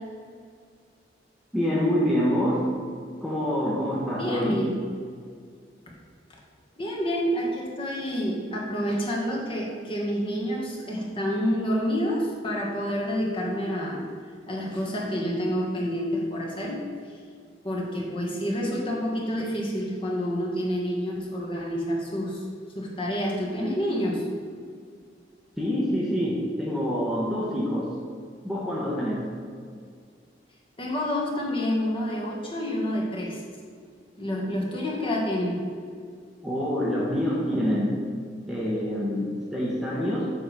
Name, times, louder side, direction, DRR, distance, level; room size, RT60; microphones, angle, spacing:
voice 1, 1.5-2.7 3.2-4.6 25.6-27.9 28.4-29.2 36.4-38.0 38.5-40.3, equal, ahead, -5 dB, 0.9 m, -26 dB
voice 2, 4.1-4.8 6.8-14.0 14.5-16.8 17.6-22.4 22.7-24.2 30.8-33.4 34.2-35.6, equal, 30° left, -3 dB, 1.4 m, -28 dB
8.0 x 3.6 x 6.6 m, 2.1 s
head